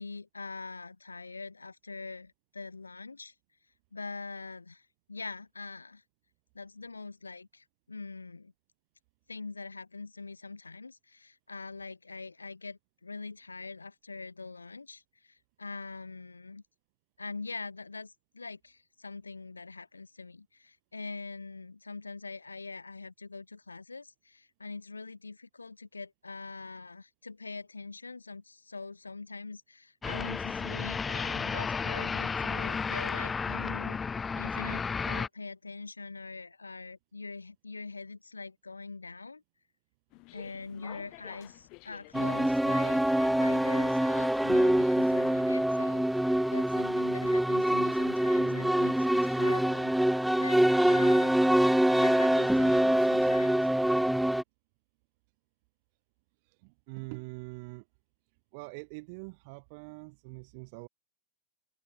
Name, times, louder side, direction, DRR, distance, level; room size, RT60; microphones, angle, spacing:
voice 1, 0.0-3.3 3.9-6.0 6.5-8.5 9.3-16.6 17.2-34.0 34.3-39.4 40.3-49.9 50.4-51.4 51.9-53.6, left 3 dB, 80° left, 3.8 m, -43 dB
sound 1, 30.0-35.3, left 5 dB, 15° left, 0.7 m, -33 dB
sound 2, 40.1-46.9, left 28 dB, 45° left, 7.0 m, -51 dB
sound 3, 42.1-54.4, right 1 dB, ahead, 1.2 m, -25 dB
voice 2, 56.5-57.8 58.5-60.9, right 31 dB, 45° right, 4.5 m, -44 dB
figure-of-eight pair, 90°, 0 cm